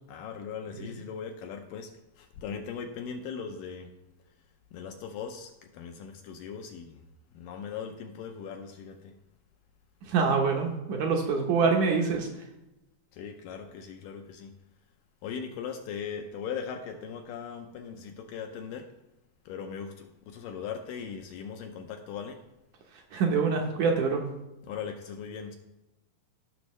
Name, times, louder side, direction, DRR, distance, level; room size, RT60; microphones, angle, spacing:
voice 1, 0.1-3.9 4.7-7.1 7.3-9.2 13.1-14.6 15.2-18.9 19.5-22.4 24.7-25.6, left 6 dB, 80° left, 4 dB, 2.1 m, -39 dB
voice 2, 10.1-12.4 22.9-24.3, right 5 dB, 70° right, 1 dB, 2.1 m, -26 dB
15.5 x 6.2 x 3.1 m, 0.96 s
omnidirectional pair, 4.3 m